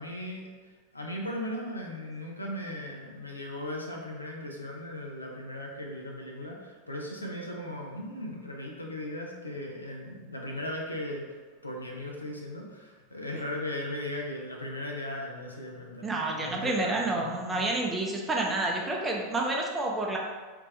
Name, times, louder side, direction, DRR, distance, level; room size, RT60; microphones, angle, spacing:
voice 1, 0.0-11.2 11.6-17.6, left 1 dB, 85° left, -1 dB, 0.6 m, -37 dB
voice 2, 16.0-20.2, right 2 dB, 15° right, -1 dB, 0.7 m, -29 dB
3.4 x 2.9 x 3.1 m, 1.4 s
figure-of-eight pair, 85°, 0 cm